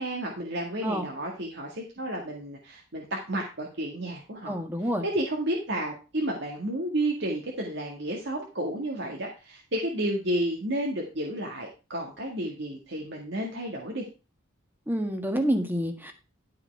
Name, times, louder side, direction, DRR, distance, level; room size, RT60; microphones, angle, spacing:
voice 1, 0.0-14.1, right 1 dB, 60° right, 0 dB, 1.8 m, -31 dB
voice 2, 4.5-5.0 14.9-16.1, equal, 10° right, 6 dB, 1.5 m, -28 dB
12.0 x 5.7 x 4.6 m, 0.31 s
head